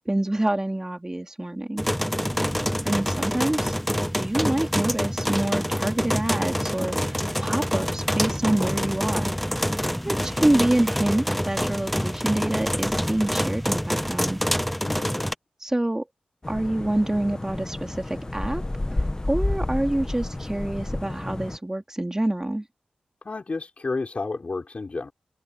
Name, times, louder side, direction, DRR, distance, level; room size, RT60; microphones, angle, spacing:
voice 1, 0.0-1.8 2.8-3.7 4.1-9.3 10.0-14.4 15.6-16.0 16.5-22.7, right 1 dB, 20° right, 3.3 m, -26 dB
sound 1, 1.8-15.3, equal, ahead, 0.6 m, -26 dB
voice 2, 2.3-2.7 10.2-10.4 14.8-15.3 23.2-25.1, left 3 dB, 50° left, 5.3 m, -32 dB
sound 2, 16.4-21.6, left 2 dB, 25° left, 1.7 m, -30 dB
cardioid pair, 45°, 3 cm